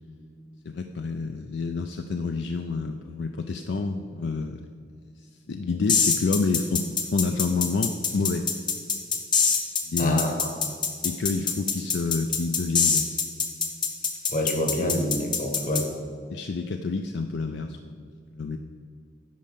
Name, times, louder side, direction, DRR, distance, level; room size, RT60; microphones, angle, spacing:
voice 1, 0.6-4.7 5.0-8.5 9.9-10.3 11.0-13.1 16.3-18.1 18.3-18.6, left 4 dB, 65° left, 7 dB, 0.4 m, -28 dB
sound 1, 5.9-15.8, left 5 dB, 25° left, 0.7 m, -24 dB
voice 2, 10.0-10.5 14.3-15.8, equal, 45° left, 4 dB, 1.2 m, -27 dB
9.2 x 5.3 x 6.7 m, 2.1 s
head